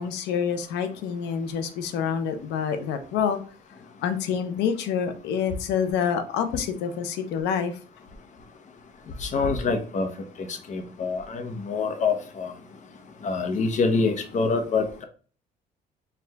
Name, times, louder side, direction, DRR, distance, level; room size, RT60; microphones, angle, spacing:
voice 1, 0.0-3.4 4.0-7.8, left 7 dB, 85° left, 0.7 m, -27 dB
voice 2, 9.2-10.1 10.4-12.5 13.2-15.0, left 4 dB, 45° left, 0.9 m, -26 dB
4.6 x 2.5 x 3.3 m
cardioid pair, 110°, 17 cm